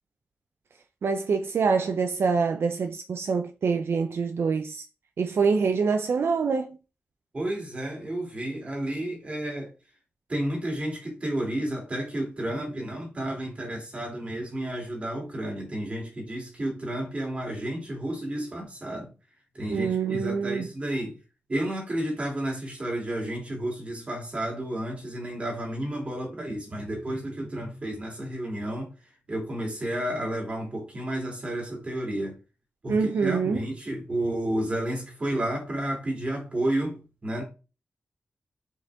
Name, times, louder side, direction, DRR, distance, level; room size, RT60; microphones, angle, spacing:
voice 1, 1.0-4.9 5.2-6.8 19.7-20.7 32.9-33.7, right 5 dB, 75° right, 0.5 m, -25 dB
voice 2, 7.3-9.7 10.3-19.1 19.5-21.2 21.5-28.9 29.3-32.4 32.8-37.4, right 1 dB, 30° right, 2.8 m, -31 dB
6.4 x 5.1 x 3.6 m
wide cardioid pair, 180°, 4 cm